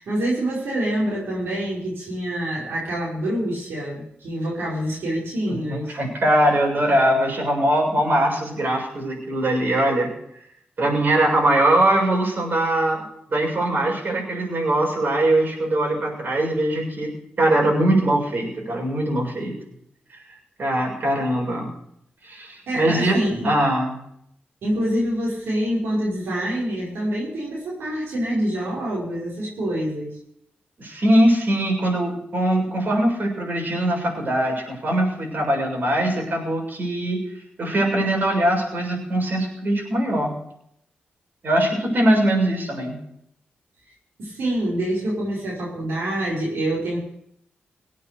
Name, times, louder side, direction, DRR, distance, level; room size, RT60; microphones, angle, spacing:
voice 1, 0.0-5.9 22.7-23.5 24.6-30.2 44.2-47.0, right 1 dB, 85° right, -6 dB, 5.6 m, -26 dB
voice 2, 5.5-10.1 10.8-13.0 13.3-17.1 17.4-19.5 20.6-21.7 22.2-24.0 30.8-37.2 37.6-40.3 41.4-43.0, right 1 dB, 55° right, -1 dB, 7.0 m, -21 dB
19.0 x 8.7 x 6.9 m, 0.73 s
cardioid pair, 55°, 4 cm